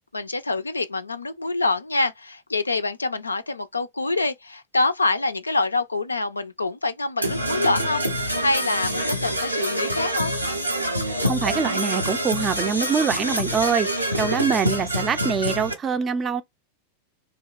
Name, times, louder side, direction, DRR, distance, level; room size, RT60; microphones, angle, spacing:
voice 1, 0.1-10.3 14.1-14.5, left 3 dB, 80° left, 0.3 m, -26 dB
Percussion / Brass instrument, 7.2-15.7, equal, 90° right, 0.6 m, -26 dB
voice 2, 11.2-16.4, right 6 dB, 25° right, 0.4 m, -24 dB
2.8 x 2.1 x 2.3 m
figure-of-eight pair, 90°, 0 cm